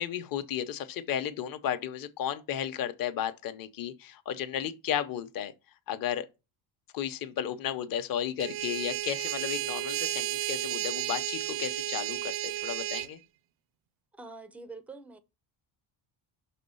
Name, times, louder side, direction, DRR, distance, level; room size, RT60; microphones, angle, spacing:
voice 1, 0.0-5.5 5.9-6.3 6.9-13.2, left 10 dB, 45° left, 0.8 m, -34 dB
sound 1, 8.4-13.1, right 15 dB, 80° right, 0.6 m, -33 dB
voice 2, 14.2-15.2, right 3 dB, 5° right, 0.3 m, -45 dB
6.1 x 4.2 x 5.4 m
cardioid pair, 160°, 47 cm